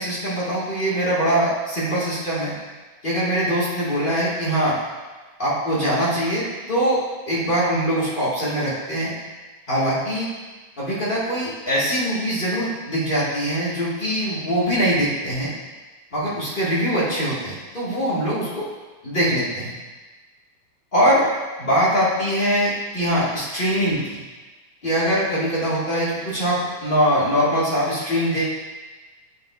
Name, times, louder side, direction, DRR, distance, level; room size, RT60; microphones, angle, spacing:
voice 1, 0.0-2.5 3.0-4.8 5.4-9.1 9.7-10.3 10.8-15.5 16.1-18.6 19.0-19.7 20.9-21.3 21.6-24.2 24.8-28.4, equal, 35° left, -9 dB, 0.8 m, -22 dB
8.7 x 5.4 x 2.3 m, 1.3 s
omnidirectional pair, 3.3 m